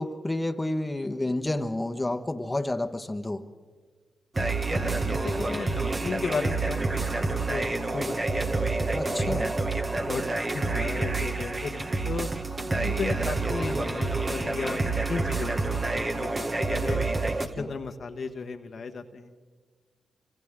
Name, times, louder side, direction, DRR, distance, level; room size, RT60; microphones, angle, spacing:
voice 1, 0.0-3.5 8.9-9.5 17.5-17.7, left 1 dB, 20° left, 6 dB, 1.4 m, -30 dB
sound 1, 4.4-17.5, right 3 dB, 40° right, 2.0 m, -28 dB
voice 2, 4.6-8.9 9.2-9.4 10.0-12.3 12.8-17.0 17.6-19.5, left 4 dB, 60° left, 5 dB, 1.4 m, -35 dB
29.5 x 26.5 x 3.8 m, 1.5 s
supercardioid pair, 45°, 0 cm